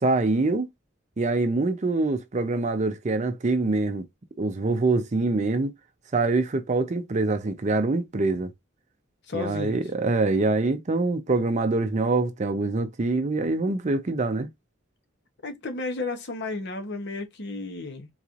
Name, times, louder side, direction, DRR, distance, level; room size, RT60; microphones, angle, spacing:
voice 1, 0.0-0.7 1.2-4.1 4.4-5.7 6.1-8.5 9.3-14.5, right 3 dB, 35° right, 0.5 m, -24 dB
voice 2, 9.3-9.8 15.4-18.1, left 3 dB, 55° left, 0.8 m, -33 dB
3.9 x 3.0 x 2.4 m
head